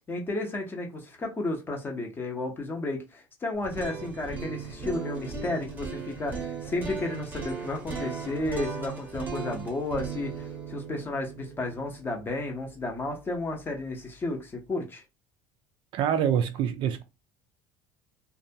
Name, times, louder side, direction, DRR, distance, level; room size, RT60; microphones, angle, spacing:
voice 1, 0.1-15.0, left 2 dB, 20° left, 0.6 m, -33 dB
sound 1, 3.5-13.6, right 5 dB, 15° right, 0.7 m, -38 dB
voice 2, 15.9-17.0, right 9 dB, 50° right, 0.3 m, -25 dB
2.6 x 2.2 x 2.6 m
cardioid pair, 150°, 11 cm